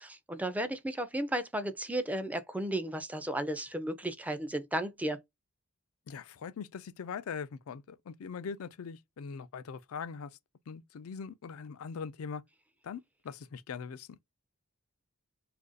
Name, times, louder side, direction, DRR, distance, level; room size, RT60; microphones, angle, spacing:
voice 1, 0.0-5.2, right 1 dB, 5° right, 0.4 m, -34 dB
voice 2, 6.1-10.4 10.7-12.4 12.8-14.2, left 6 dB, 75° left, 0.4 m, -41 dB
2.8 x 2.5 x 3.8 m
head